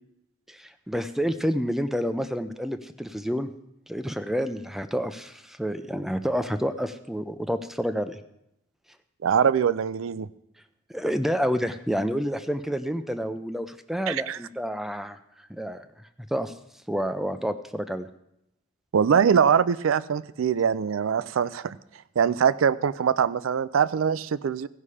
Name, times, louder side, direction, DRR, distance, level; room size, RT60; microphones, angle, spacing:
voice 1, 0.5-3.5 3.9-8.2 10.9-15.9 16.3-16.5 16.9-18.1, equal, ahead, 10 dB, 0.4 m, -29 dB
voice 2, 9.2-10.3 14.1-14.4 18.9-21.8 22.2-24.7, right 7 dB, 75° right, 17 dB, 0.4 m, -23 dB
15.5 x 5.6 x 4.8 m, 0.81 s
head